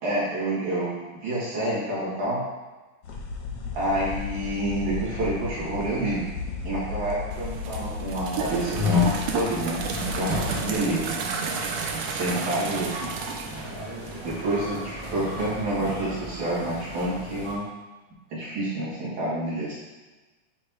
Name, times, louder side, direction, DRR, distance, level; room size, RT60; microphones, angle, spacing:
voice 1, 0.0-2.4 3.8-6.3 6.6-9.8 10.1-11.0 12.1-13.1 14.2-17.7 18.3-19.8, right 1 dB, 65° right, -9 dB, 3.5 m, -28 dB
sound 1, 3.0-10.8, left 4 dB, 70° left, 1.4 m, -35 dB
sound 2, 7.3-14.4, right 5 dB, 85° right, 1.5 m, -32 dB
sound 3, 8.4-17.5, left 4 dB, 20° right, 0.6 m, -33 dB
9.9 x 3.3 x 2.9 m, 1.2 s
omnidirectional pair, 3.5 m